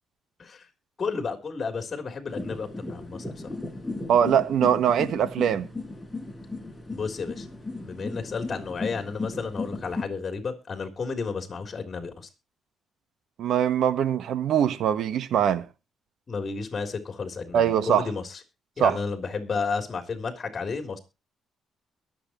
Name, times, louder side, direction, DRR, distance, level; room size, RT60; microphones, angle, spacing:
voice 1, 1.0-3.6 6.9-7.5 7.8-12.3 16.3-18.4 18.8-21.0, left 4 dB, 40° left, 3.5 m, -32 dB
sound 1, 2.3-10.0, left 2 dB, 10° left, 7.5 m, -36 dB
voice 2, 4.1-5.7 13.4-15.7 17.5-18.1 18.8-19.0, right 9 dB, 70° right, 1.3 m, -22 dB
22.5 x 7.8 x 3.0 m
cardioid pair, 90°, 0 cm